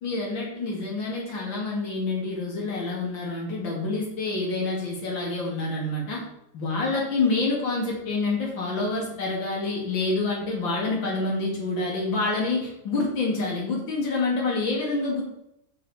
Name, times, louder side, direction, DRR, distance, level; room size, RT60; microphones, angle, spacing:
voice 1, 0.0-6.2 6.5-15.2, left 3 dB, 70° left, -3 dB, 2.9 m, -27 dB
7.6 x 6.8 x 4.1 m, 0.78 s
omnidirectional pair, 2.1 m